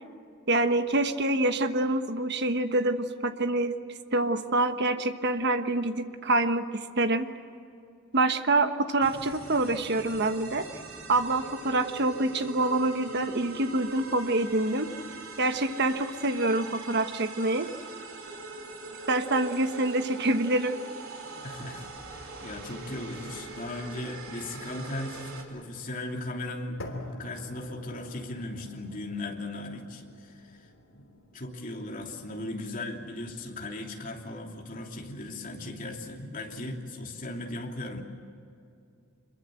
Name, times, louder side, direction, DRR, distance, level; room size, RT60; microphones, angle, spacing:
voice 1, 0.5-3.7 4.1-6.6 7.0-7.3 8.1-10.6 11.1-14.9 15.4-17.7 19.1-20.8, right 2 dB, 55° right, 8 dB, 1.3 m, -26 dB
sound 1, 9.0-25.4, right 3 dB, 80° right, 3.7 m, -43 dB
voice 2, 21.4-26.8 27.2-31.0 31.3-38.0, left 1 dB, 40° left, 0 dB, 3.0 m, -37 dB
sound 2, 26.8-34.8, left 1 dB, 70° left, 3.3 m, -47 dB
26.0 x 22.5 x 7.8 m, 2.5 s
head